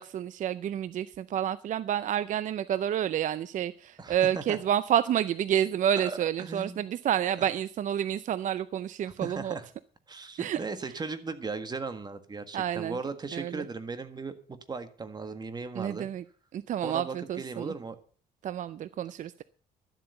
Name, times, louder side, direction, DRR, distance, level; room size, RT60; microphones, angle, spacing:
voice 1, 0.0-9.6 10.4-10.6 12.5-13.0 13.3-13.6 15.8-16.2 16.5-17.7 18.4-19.4, right 10 dB, 50° right, 15 dB, 0.5 m, -29 dB
voice 2, 4.0-4.6 6.0-6.9 7.4-7.5 9.2-9.7 10.1-16.1 16.8-18.0, right 4 dB, 25° right, 10 dB, 1.6 m, -37 dB
12.5 x 8.0 x 6.7 m, 0.43 s
cardioid pair, 110°, 17 cm